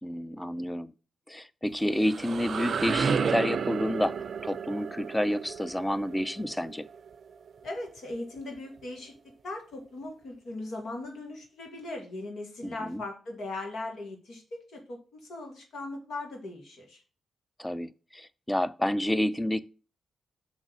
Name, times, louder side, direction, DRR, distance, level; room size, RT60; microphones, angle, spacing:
voice 1, 0.0-0.9 1.3-6.9 12.6-13.0 17.6-19.6, equal, 10° left, 0.6 m, -29 dB
sound 1, 1.7-7.5, right 6 dB, 65° right, 0.4 m, -32 dB
voice 2, 7.6-9.1 9.4-17.0, left 2 dB, 75° left, 2.0 m, -39 dB
6.3 x 3.9 x 6.3 m
supercardioid pair, 45°, 0 cm